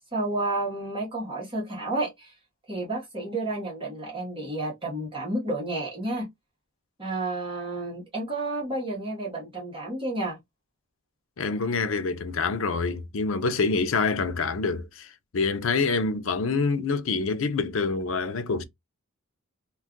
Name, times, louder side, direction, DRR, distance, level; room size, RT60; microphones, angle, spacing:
voice 1, 0.1-2.3 2.7-6.3 7.0-10.4, right 2 dB, 25° right, 1.1 m, -31 dB
voice 2, 11.4-18.6, left 4 dB, 65° left, 0.5 m, -26 dB
2.6 x 2.3 x 3.6 m
head